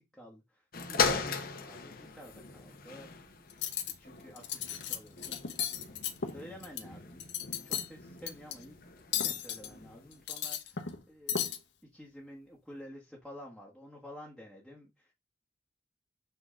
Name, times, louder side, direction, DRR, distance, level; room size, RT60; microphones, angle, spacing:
voice 1, 0.1-0.6 0.9-3.1 3.9-5.4 6.2-7.3 7.6-8.8 9.1-11.4 11.9-15.1, equal, ahead, 1.2 m, -50 dB
sound 1, 0.7-10.3 10.9-11.0, left 5 dB, 55° left, 1.0 m, -38 dB
Cutlery silverware, 3.5-3.9 4.4-5.0 5.2-6.8 7.2-7.9 8.3-8.5 9.1-9.7 10.1-11.0 11.3-11.6, left 8 dB, 85° left, 0.9 m, -34 dB
6.8 x 3.9 x 3.7 m
head